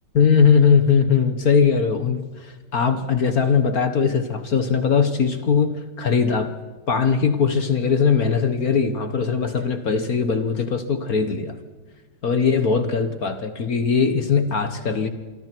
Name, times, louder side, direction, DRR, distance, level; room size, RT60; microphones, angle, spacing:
voice 1, 0.1-6.5 6.9-11.6 12.2-15.1, left 6 dB, 50° left, 9 dB, 1.5 m, -20 dB
27.0 x 25.0 x 4.6 m, 1.3 s
omnidirectional pair, 2.3 m